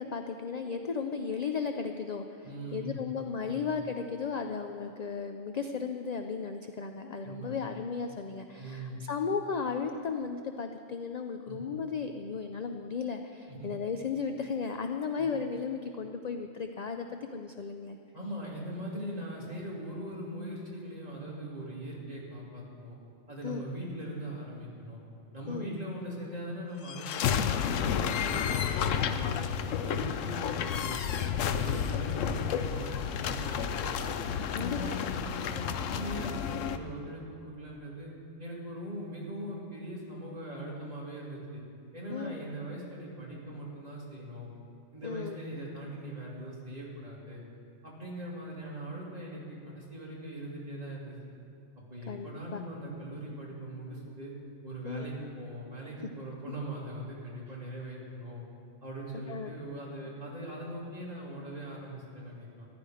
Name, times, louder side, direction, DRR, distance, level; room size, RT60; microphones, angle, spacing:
voice 1, 0.0-18.0 23.4-23.6 25.5-25.7 34.3-35.0 42.1-42.4 45.0-45.4 52.1-52.6 54.8-55.1 59.3-59.5, left 5 dB, 55° left, 6 dB, 0.4 m, -35 dB
voice 2, 2.4-3.0 3.4-3.6 7.2-7.5 8.6-9.0 11.5-11.8 13.5-13.7 15.2-15.3 18.1-23.0 23.3-25.0 25.3-29.5 29.8-31.1 31.4-34.1 34.5-38.1 38.4-41.6 41.9-44.5 44.9-47.4 47.8-51.2 51.9-54.3 54.6-58.4 58.8-62.7, right 1 dB, 30° right, -5 dB, 2.7 m, -41 dB
sound 1, 26.8-36.8, left 8 dB, 85° left, 1.0 m, -31 dB
14.0 x 12.5 x 5.0 m, 2.5 s
omnidirectional pair, 1.3 m